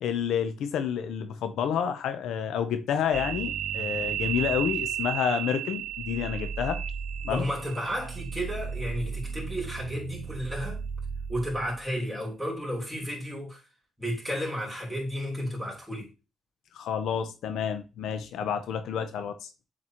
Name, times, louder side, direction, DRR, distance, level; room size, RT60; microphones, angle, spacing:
voice 1, 0.0-6.8 7.2-7.5 16.7-19.5, left 8 dB, 80° left, 0.7 m, -29 dB
sound 1, 3.1-11.7, right 8 dB, 70° right, 0.7 m, -34 dB
voice 2, 7.3-10.8 11.3-13.6 14.0-16.1, equal, ahead, 3.6 m, -32 dB
7.6 x 4.2 x 3.0 m
cardioid pair, 90°, 0 cm